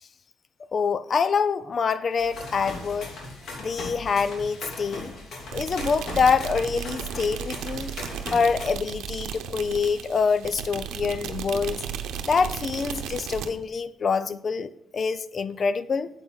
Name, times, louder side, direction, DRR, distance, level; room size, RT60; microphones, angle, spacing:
voice 1, 0.7-3.1 3.6-5.1 5.5-7.9 8.3-11.9 12.2-16.1, left 5 dB, 45° left, 0.6 m, -25 dB
sound 1, 2.2-8.7, left 2 dB, 65° left, 2.8 m, -38 dB
sound 2, 5.5-13.5, right 8 dB, 85° right, 0.8 m, -35 dB
8.7 x 7.8 x 4.0 m
cardioid pair, 90°, 0 cm